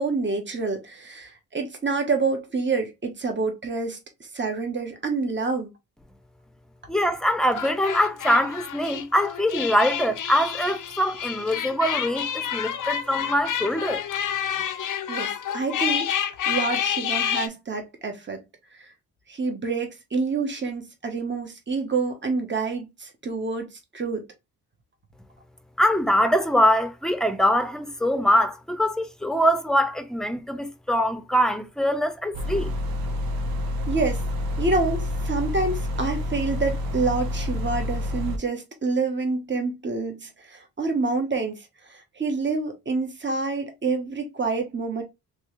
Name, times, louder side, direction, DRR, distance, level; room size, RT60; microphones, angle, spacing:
voice 1, 0.0-5.7 15.1-16.1 16.5-18.4 18.8-18.9 19.3-24.2 33.9-34.2 34.6-41.6 41.9-45.0, right 3 dB, 30° right, 1.2 m, -27 dB
voice 2, 6.9-14.0 25.8-32.7, equal, ahead, 0.7 m, -23 dB
sound 1, 7.4-17.5, left 9 dB, 60° left, 0.6 m, -29 dB
sound 2, 32.3-38.4, left 1 dB, 85° right, 0.8 m, -28 dB
3.2 x 3.2 x 3.0 m
cardioid pair, 80°, 35 cm